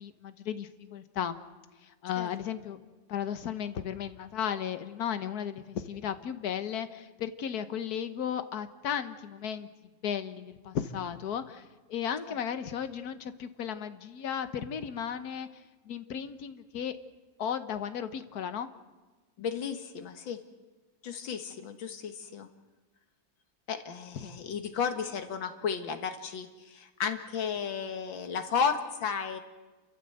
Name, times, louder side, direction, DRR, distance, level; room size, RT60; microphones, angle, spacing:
voice 1, 0.0-1.4 2.0-2.8 3.1-9.7 10.0-15.5 15.9-16.9 17.4-18.7 24.1-24.3, left 8 dB, 60° left, 11 dB, 1.4 m, -35 dB
voice 2, 19.4-20.4 21.0-22.5 23.7-29.4, left 6 dB, 90° left, 8 dB, 2.2 m, -33 dB
28.5 x 14.0 x 7.8 m, 1.2 s
omnidirectional pair, 2.0 m